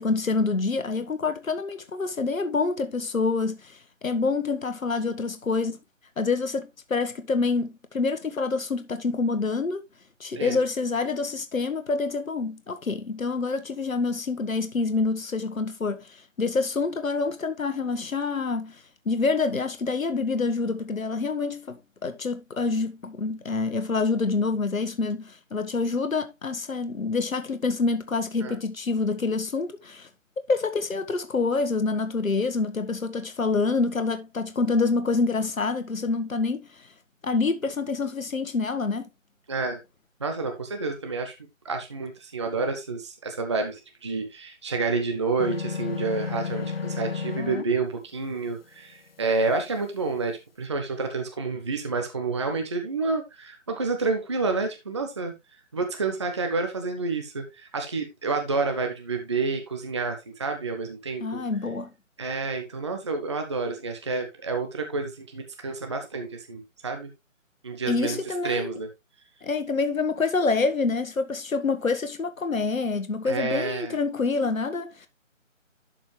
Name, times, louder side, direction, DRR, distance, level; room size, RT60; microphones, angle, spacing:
voice 1, 0.0-5.8 6.2-9.8 10.2-30.1 30.5-36.9 37.2-39.1 61.2-61.9 67.9-68.8 69.4-75.1, left 4 dB, 90° left, 1.4 m, -27 dB
voice 2, 39.5-39.8 40.2-41.4 41.6-55.3 55.7-61.4 62.2-67.1 67.6-68.9 73.2-74.0, right 3 dB, 20° right, 0.8 m, -29 dB
sound 1, 45.4-47.7, left 5 dB, 50° left, 0.7 m, -31 dB
12.0 x 5.1 x 3.2 m
figure-of-eight pair, 165°, 40 cm